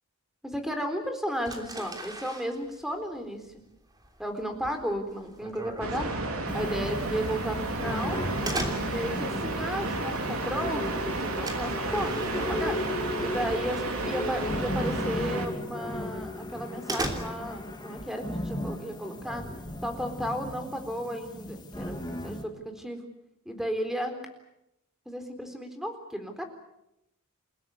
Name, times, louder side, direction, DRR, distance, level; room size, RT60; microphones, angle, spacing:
voice 1, 0.4-3.4 4.2-6.1 6.5-8.2 8.9-12.8 13.2-19.4 19.8-23.1 23.5-24.2 25.1-26.5, equal, ahead, 6 dB, 3.9 m, -34 dB
sound 1, 1.4-13.3 13.6-14.1 14.5-14.6 15.1-15.2 15.6-15.7 16.1-17.7, right 2 dB, 20° right, 3.2 m, -39 dB
sound 2, 5.8-15.5, right 2 dB, 80° right, 3.9 m, -32 dB
sound 3, 6.5-22.4, left 1 dB, 20° left, 2.7 m, -36 dB
29.0 x 17.0 x 9.5 m, 0.85 s
head